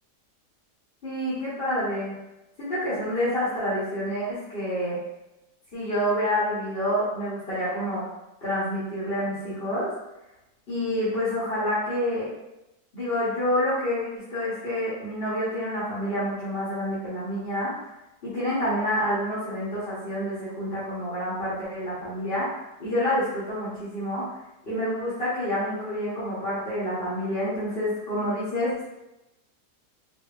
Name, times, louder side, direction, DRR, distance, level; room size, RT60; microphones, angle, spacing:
voice 1, 1.0-2.1 2.6-5.0 5.7-8.0 8.4-9.9 10.7-12.3 12.9-17.7 18.2-24.2 24.6-28.8, equal, 40° left, -11 dB, 1.2 m, -28 dB
4.1 x 2.7 x 2.4 m, 0.95 s
omnidirectional pair, 1.8 m